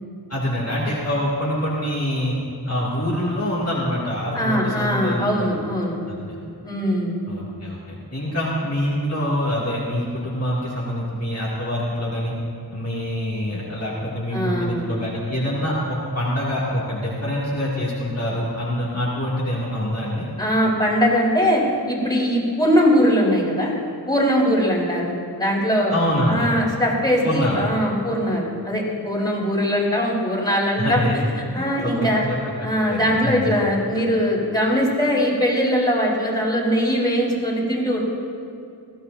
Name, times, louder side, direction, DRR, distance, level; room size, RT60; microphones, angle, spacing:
voice 1, 0.3-2.3 2.6-5.5 6.1-6.4 7.3-12.3 12.7-20.3 25.9-26.5 27.2-27.6 30.8-31.2 31.5-33.5, equal, 40° left, -8 dB, 2.5 m, -25 dB
voice 2, 4.3-6.0 6.6-7.2 14.3-14.9 20.4-23.7 24.1-25.9 26.3-31.0 31.5-32.2 32.6-38.0, equal, 10° left, -5 dB, 4.0 m, -21 dB
20.5 x 15.0 x 2.7 m, 2.6 s
wide cardioid pair, 50°, 40 cm